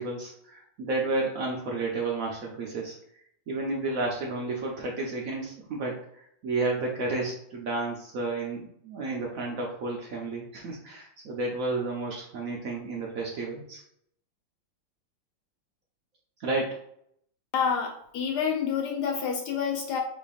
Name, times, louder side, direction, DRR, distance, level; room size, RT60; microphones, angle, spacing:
voice 1, 0.0-3.0 3.5-13.8 16.4-16.8, right 3 dB, 70° right, -1 dB, 0.8 m, -31 dB
voice 2, 17.5-20.0, left 6 dB, 75° left, 1 dB, 1.0 m, -28 dB
4.0 x 3.3 x 2.4 m, 0.72 s
omnidirectional pair, 2.1 m